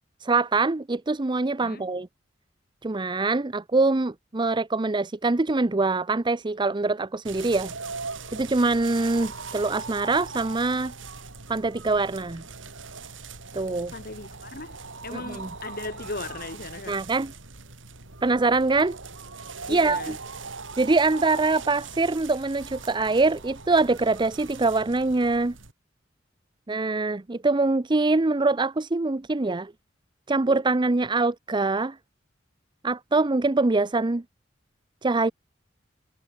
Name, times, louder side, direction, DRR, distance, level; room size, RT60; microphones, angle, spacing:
voice 1, 0.2-2.1 2.8-7.7 8.3-10.9 11.5-12.4 13.5-13.9 15.1-15.5 16.9-17.3 18.2-19.0 19.7-20.2 20.8-25.6 26.7-29.7 30.3-32.0 32.8-34.2 35.0-35.3, right 3 dB, 25° right, 0.6 m, -24 dB
sound 1, 7.2-25.7, right 4 dB, 85° right, 4.0 m, -40 dB
voice 2, 13.9-14.8 15.0-17.0 19.7-20.1, left 3 dB, 50° left, 2.5 m, -37 dB
head